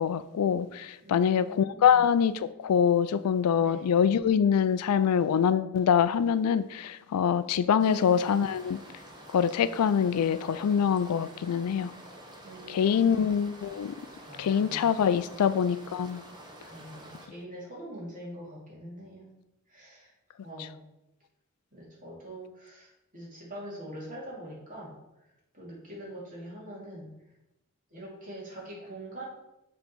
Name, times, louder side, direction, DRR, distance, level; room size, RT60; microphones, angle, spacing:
voice 1, 0.0-8.8 9.3-11.9 12.7-13.9 14.4-16.2, left 7 dB, 90° left, 0.4 m, -25 dB
voice 2, 1.0-2.0 3.6-3.9 7.5-8.2 12.4-13.3 14.3-15.3 16.7-19.3 19.7-20.1 20.4-20.8 21.7-25.0 25.5-27.1 27.9-29.2, right 1 dB, 35° right, 2.5 m, -44 dB
sound 1, 7.8-17.3, right 1 dB, 20° right, 1.0 m, -48 dB
7.1 x 3.9 x 4.5 m
head